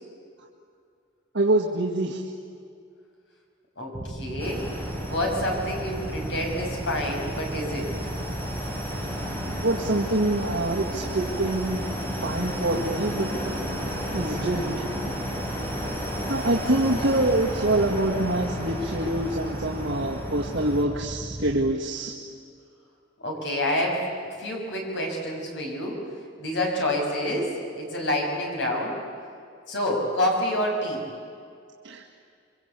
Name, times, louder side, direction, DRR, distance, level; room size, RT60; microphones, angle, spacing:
voice 1, 1.3-2.2 9.6-11.8 12.2-13.5 14.1-14.8 16.3-22.1 31.8-32.0, right 1 dB, 80° right, -2 dB, 2.1 m, -25 dB
voice 2, 3.8-8.0 23.2-24.0 24.4-26.0 26.4-29.0 29.7-31.0, left 1 dB, 70° left, 0 dB, 6.4 m, -28 dB
sound 1, 3.9-21.7, right 1 dB, 30° right, 1.2 m, -36 dB
sound 2, 4.4-20.8, equal, 10° left, 4.1 m, -34 dB
28.0 x 23.5 x 8.4 m, 2.3 s
head